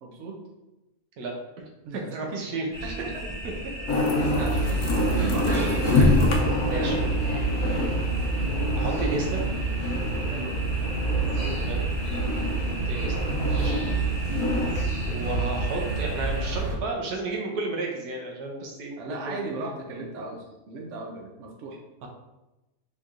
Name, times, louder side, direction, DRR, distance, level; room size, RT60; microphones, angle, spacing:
voice 1, 0.0-0.4 1.8-2.5 2.8-3.2 4.2-7.0 7.6-7.9 8.8-9.1 10.2-10.6 11.0-11.7 12.2-12.5 14.3-14.5 19.0-21.8, right 3 dB, 60° right, 1 dB, 0.9 m, -38 dB
voice 2, 2.1-2.9 6.2-6.4 6.7-6.9 8.8-9.4 11.6-11.9 12.9-13.1 13.5-13.8 15.0-19.7 22.0-22.1, right 3 dB, 90° right, 0 dB, 1.2 m, -32 dB
sound 1, 2.7-16.5, right 1 dB, 20° left, 0.8 m, -37 dB
sound 2, 3.9-11.8 12.1-14.8, left 2 dB, 80° left, 1.2 m, -27 dB
sound 3, 4.2-16.8, right 3 dB, 20° right, 0.9 m, -28 dB
4.4 x 3.0 x 2.5 m, 1.0 s
omnidirectional pair, 1.6 m